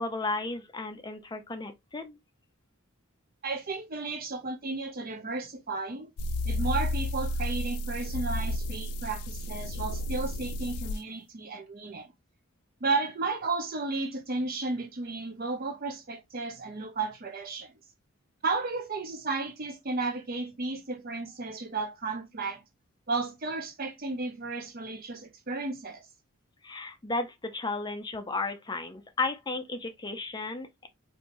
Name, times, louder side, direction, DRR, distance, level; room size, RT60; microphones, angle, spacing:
voice 1, 0.0-2.2 26.6-30.9, left 3 dB, 20° left, 0.4 m, -34 dB
voice 2, 3.4-6.1 6.5-12.1 12.8-17.7 18.4-22.6 23.1-26.0, right 3 dB, 40° right, 0.6 m, -33 dB
sound 1, 6.2-11.0, left 1 dB, 85° left, 0.3 m, -32 dB
4.3 x 2.7 x 2.5 m
head